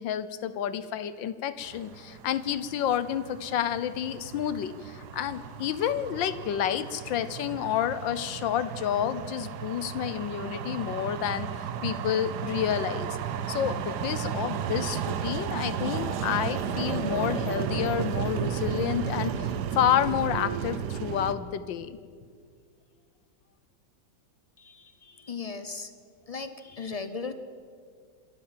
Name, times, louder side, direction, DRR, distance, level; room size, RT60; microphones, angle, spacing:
voice 1, 0.0-13.2 13.5-22.0, left 10 dB, 80° left, 14 dB, 1.6 m, -29 dB
sound 1, 1.6-21.3, right 8 dB, 65° right, 1.3 m, -34 dB
voice 2, 24.6-25.9 26.3-27.3, left 4 dB, 55° left, 11 dB, 0.4 m, -37 dB
27.0 x 13.0 x 7.5 m, 2.1 s
omnidirectional pair, 2.0 m